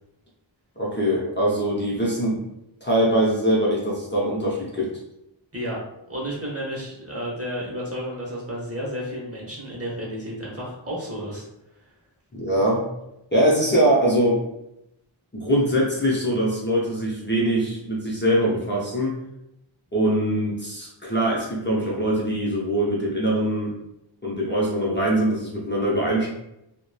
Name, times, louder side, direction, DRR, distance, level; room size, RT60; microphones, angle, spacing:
voice 1, 0.8-2.4 2.8-4.9 12.3-12.8 13.3-14.4 15.3-19.2 19.9-23.7 24.2-26.3, right 1 dB, 25° left, -5 dB, 0.6 m, -22 dB
voice 2, 6.1-11.4, equal, 30° right, -4 dB, 0.8 m, -32 dB
2.8 x 2.1 x 2.2 m, 0.85 s
wide cardioid pair, 45°, 48 cm